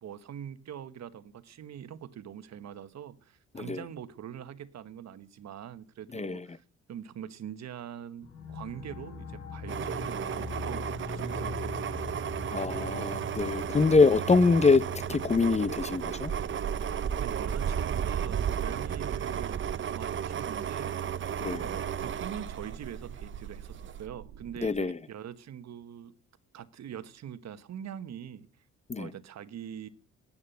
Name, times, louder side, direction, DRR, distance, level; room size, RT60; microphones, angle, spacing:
voice 1, 0.0-12.1 17.2-21.0 21.5-26.1 26.5-28.5 29.0-29.9, right 9 dB, 60° right, 1.2 m, -43 dB
voice 2, 3.5-3.9 6.1-6.6 12.5-14.8 15.1-16.3 21.4-21.7 24.6-25.0 28.9-29.1, left 4 dB, 20° left, 0.7 m, -25 dB
sound 1, 8.2-19.5, left 4 dB, 55° left, 6.3 m, -43 dB
sound 2, 9.7-23.4 23.8-24.0, right 8 dB, 40° right, 0.7 m, -33 dB
sound 3, 15.9-24.8, right 8 dB, 80° right, 1.8 m, -47 dB
11.0 x 8.5 x 9.2 m
cardioid pair, 90°, 30 cm